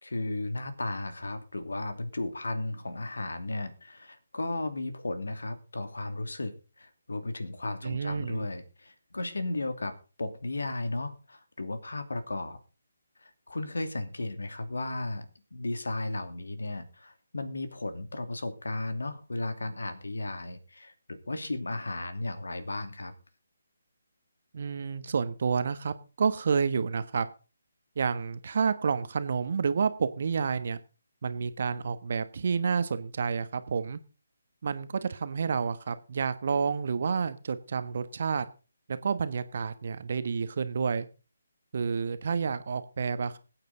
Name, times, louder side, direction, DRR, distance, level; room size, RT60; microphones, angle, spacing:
voice 1, 0.0-12.6 13.2-15.3 15.5-23.1, left 2 dB, 70° left, 10 dB, 2.6 m, -35 dB
voice 2, 7.8-8.5 24.5-27.3 28.0-30.8 31.2-34.0 34.6-38.4 38.9-41.1 41.7-43.4, right 5 dB, 50° right, 12 dB, 1.3 m, -29 dB
20.5 x 9.1 x 3.9 m, 0.34 s
figure-of-eight pair, 145°, 0 cm